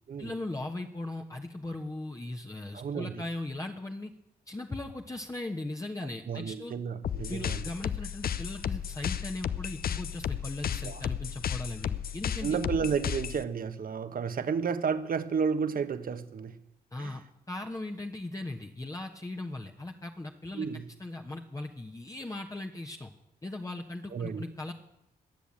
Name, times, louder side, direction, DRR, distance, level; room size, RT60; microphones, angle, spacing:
voice 1, 0.2-4.1 4.5-6.7 7.3-12.6 16.9-23.1 23.4-24.7, left 2 dB, 20° left, 1.3 m, -38 dB
voice 2, 2.7-3.2 6.3-7.6 10.8-11.0 12.4-16.6 17.0-17.1 20.5-20.9 24.1-24.4, right 6 dB, 60° right, 1.3 m, -32 dB
sound 1, 7.0-13.4, left 9 dB, 65° left, 0.8 m, -34 dB
21.5 x 7.2 x 8.6 m
cardioid pair, 65°, 17 cm